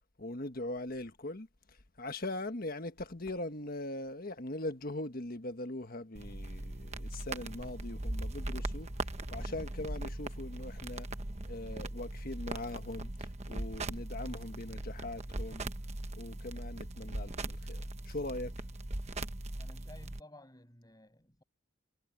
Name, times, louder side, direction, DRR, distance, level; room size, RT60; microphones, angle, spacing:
voice 1, 0.2-1.5 2.0-8.9 9.3-11.1 11.4-15.7 16.1-18.5, left 1 dB, 45° left, 1.5 m, -41 dB
sound 1, 6.1-20.2, right 1 dB, 30° right, 1.1 m, -40 dB
voice 2, 19.6-21.4, left 1 dB, 20° left, 7.2 m, -55 dB
head